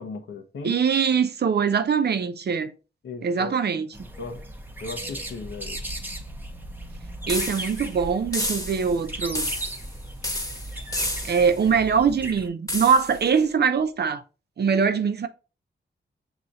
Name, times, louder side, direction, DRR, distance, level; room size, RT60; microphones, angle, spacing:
voice 1, 0.0-0.8 3.0-3.6 4.2-4.4 4.8-5.8, left 4 dB, 80° left, 0.9 m, -36 dB
voice 2, 0.6-2.7 3.2-3.9 7.3-9.5 11.2-14.2 14.6-15.3, right 6 dB, 55° right, 0.6 m, -22 dB
sound 1, 3.9-12.5, right 1 dB, 10° right, 0.8 m, -37 dB
sound 2, 7.3-7.9 8.3-9.0 9.3-9.9 10.2-11.6 12.7-13.2, left 1 dB, 15° left, 1.1 m, -30 dB
6.2 x 3.0 x 2.6 m
cardioid pair, 55°, 20 cm